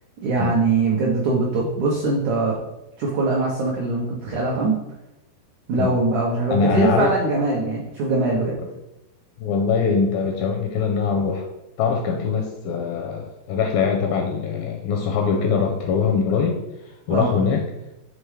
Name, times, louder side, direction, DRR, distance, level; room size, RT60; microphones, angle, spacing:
voice 1, 0.2-2.6 3.0-4.7 5.7-8.6 17.1-17.3, right 3 dB, 80° right, -3 dB, 1.7 m, -22 dB
voice 2, 6.5-7.1 8.6-8.7 9.4-11.4 11.8-16.6 17.1-17.6, left 5 dB, 80° left, 2 dB, 2.2 m, -22 dB
6.9 x 3.7 x 4.8 m, 0.91 s
omnidirectional pair, 4.8 m